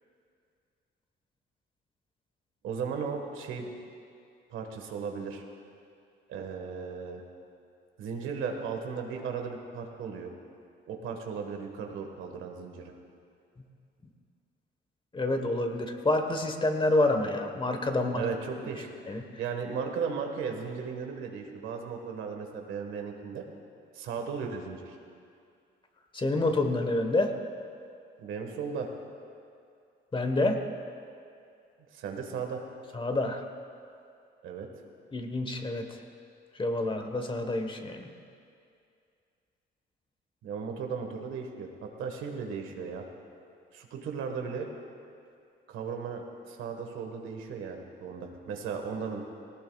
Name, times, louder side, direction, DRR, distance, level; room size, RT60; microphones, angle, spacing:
voice 1, 2.6-3.7 4.5-5.4 6.3-7.2 8.0-10.3 10.9-12.8 17.9-18.9 19.4-23.4 23.9-25.0 28.2-28.9 31.9-32.6 34.4-34.7 40.4-43.0 43.7-44.7 45.7-49.2, right 6 dB, 90° right, 3 dB, 1.5 m, -36 dB
voice 2, 15.1-18.2 19.1-19.2 26.1-27.3 30.1-30.6 32.9-33.4 35.1-35.9 36.6-38.1, left 2 dB, 25° left, 5 dB, 1.3 m, -28 dB
18.5 x 18.0 x 2.4 m, 2.4 s
cardioid pair, 90°, 20 cm